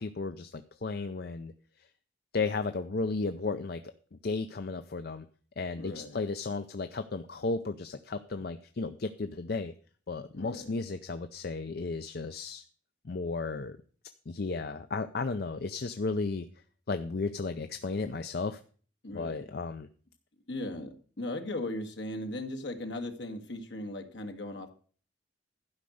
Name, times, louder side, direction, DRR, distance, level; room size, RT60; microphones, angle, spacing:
voice 1, 0.0-1.5 2.3-3.8 4.1-5.2 5.6-9.7 10.1-12.6 13.0-13.8 14.3-16.5 16.9-18.6 19.1-19.9, left 3 dB, 55° left, 9 dB, 0.5 m, -34 dB
voice 2, 5.8-6.2 10.3-10.7 19.0-19.4 20.5-24.7, left 1 dB, 70° left, 6 dB, 1.7 m, -38 dB
12.0 x 5.3 x 7.7 m, 0.43 s
head